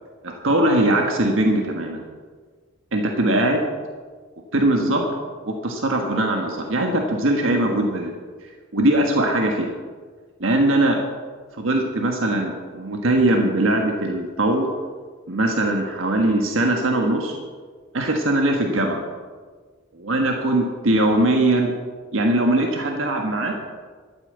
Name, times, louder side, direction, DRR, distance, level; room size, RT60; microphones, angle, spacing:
voice 1, 0.2-2.0 2.9-3.6 4.5-5.1 5.4-8.1 8.7-9.7 10.4-11.0 11.5-14.7 15.3-17.4 17.9-19.0 19.9-21.7 22.1-23.5, right 1 dB, 90° right, 2 dB, 1.5 m, -21 dB
12.5 x 8.8 x 8.0 m, 1.5 s
head